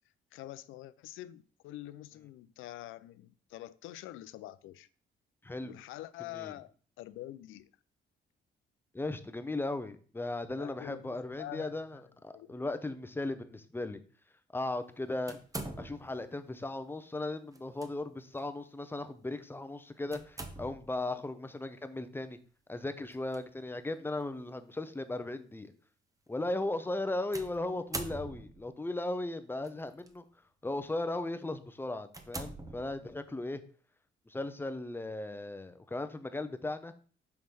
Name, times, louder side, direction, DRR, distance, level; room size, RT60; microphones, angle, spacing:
voice 1, 0.3-4.9 5.6-7.7 10.6-12.0 12.3-12.5, left 14 dB, 85° left, 0.4 m, -46 dB
voice 2, 5.4-5.7 6.2-6.5 8.9-14.0 14.5-15.4 15.8-22.4 22.7-25.7 26.3-30.2 30.6-33.6 34.3-36.9, left 2 dB, 10° left, 0.6 m, -37 dB
sound 1, 15.3-16.3 17.5-17.9 18.4-18.5 20.1-21.0 23.1-23.4 24.2-24.3 27.3-28.7 29.6-30.1 30.7-30.9 31.4-31.5 32.1-33.3, right 2 dB, 15° right, 0.8 m, -43 dB
5.8 x 3.1 x 5.3 m
cardioid pair, 90°, 20 cm